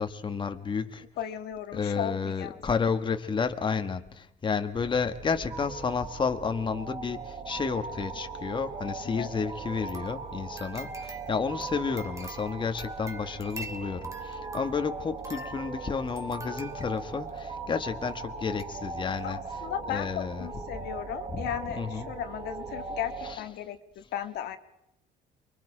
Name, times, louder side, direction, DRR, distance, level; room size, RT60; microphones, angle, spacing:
voice 1, 0.0-1.1 1.7-20.5 20.8-20.9 21.3-21.5 21.8-22.1 23.2-23.5, left 5 dB, 30° left, 1.4 m, -31 dB
voice 2, 1.2-2.6 9.0-9.3 19.2-24.6, left 10 dB, 75° left, 1.6 m, -36 dB
sound 1, 4.7-23.4, right 4 dB, 35° right, 1.7 m, -40 dB
sound 2, 9.6-17.4 18.1-18.2 18.6-18.7 19.1-19.2, right 2 dB, 20° right, 2.3 m, -44 dB
29.0 x 23.0 x 4.9 m
cardioid pair, 110°, 17 cm